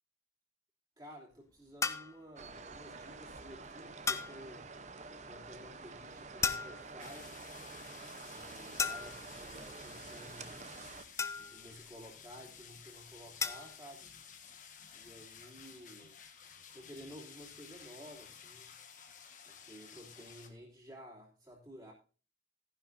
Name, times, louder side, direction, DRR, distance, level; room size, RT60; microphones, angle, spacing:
voice 1, 1.0-4.7 5.2-7.3 8.2-10.6 11.3-14.2 14.9-16.2 16.7-18.7 19.4-21.9, equal, 20° right, -5 dB, 3.0 m, -53 dB
sound 1, 1.8-2.2 4.1-4.4 6.4-7.0 8.8-9.3 11.2-11.7 13.4-13.8, left 5 dB, 15° left, 0.4 m, -35 dB
sound 2, 2.4-11.0, right 3 dB, 40° right, 0.8 m, -48 dB
sound 3, 7.0-20.5, left 7 dB, 40° left, 1.5 m, -54 dB
14.5 x 10.0 x 2.7 m, 0.35 s
head